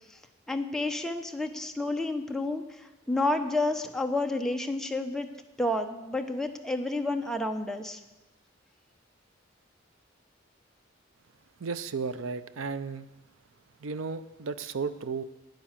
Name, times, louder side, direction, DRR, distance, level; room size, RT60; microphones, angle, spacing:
voice 1, 0.5-2.6 3.1-5.3 5.6-8.0, left 2 dB, 5° left, 4 dB, 0.8 m, -30 dB
voice 2, 11.6-13.1 13.8-15.2, right 5 dB, 85° right, 14 dB, 0.6 m, -34 dB
9.4 x 9.2 x 7.4 m, 1.1 s
head